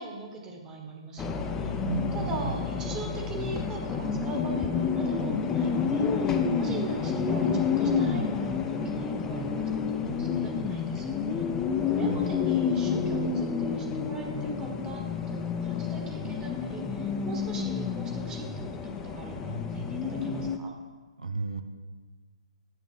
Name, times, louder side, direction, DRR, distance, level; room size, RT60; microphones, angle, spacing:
voice 1, 0.0-1.7 2.1-11.4 11.8-20.7, right 3 dB, 20° right, 0 dB, 1.5 m, -41 dB
sound 1, 1.2-20.6, left 5 dB, 15° left, 0.6 m, -29 dB
voice 2, 1.8-2.5 11.6-12.3 21.2-21.6, right 4 dB, 85° right, 7 dB, 1.0 m, -34 dB
9.4 x 6.1 x 5.5 m, 1.4 s
hypercardioid pair, 135°, 4 cm